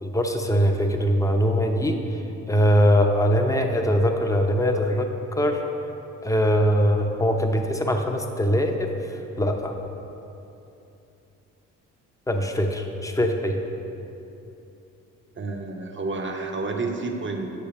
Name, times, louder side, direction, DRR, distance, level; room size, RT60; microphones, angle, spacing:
voice 1, 0.0-2.0 2.5-5.6 6.2-8.9 9.4-9.7 12.3-13.6, equal, 10° left, 3 dB, 0.8 m, -22 dB
voice 2, 15.4-17.5, right 3 dB, 35° right, 3 dB, 0.9 m, -30 dB
8.0 x 3.5 x 5.8 m, 2.9 s
supercardioid pair, 55°, 35 cm